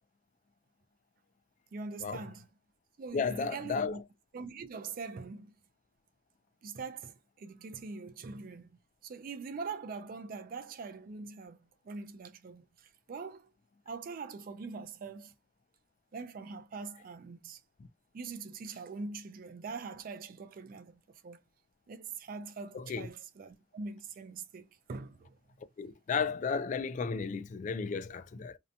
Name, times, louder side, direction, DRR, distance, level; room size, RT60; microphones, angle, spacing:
voice 1, 1.7-2.5 3.0-4.0 4.3-5.5 6.6-11.6 11.8-13.5 13.9-15.3 16.1-17.6 18.1-21.4 21.9-25.4, right 4 dB, 50° right, 0.4 m, -43 dB
voice 2, 3.1-3.9 22.9-23.1 25.8-28.6, left 5 dB, 45° left, 0.3 m, -33 dB
2.7 x 2.1 x 2.5 m
head